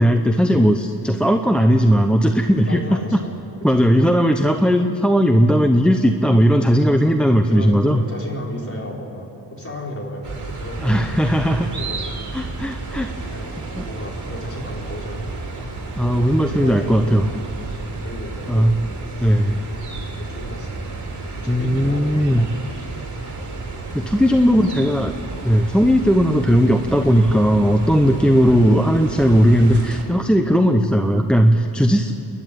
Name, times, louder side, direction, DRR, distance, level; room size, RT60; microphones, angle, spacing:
voice 1, 0.0-3.2 3.6-8.0 10.8-11.7 12.3-13.1 13.8-13.9 16.0-17.3 18.5-18.8 19.2-19.7 21.5-22.5 23.2-23.3 23.9-25.1 25.4-32.1, equal, ahead, 5 dB, 0.9 m, -17 dB
voice 2, 2.7-3.4 3.7-3.8 7.3-11.1 11.7-12.1 13.3-13.5 13.8-15.5 16.0-17.2 18.0-18.7 19.1-19.3 19.9-20.8 21.3-22.3 22.9-23.1 23.6-23.9 24.5-25.0, left 1 dB, 30° left, -1 dB, 4.6 m, -34 dB
sound 1, 10.2-30.0, right 3 dB, 40° right, 4.2 m, -32 dB
28.5 x 11.0 x 9.3 m, 2.8 s
cardioid pair, 85°, 43 cm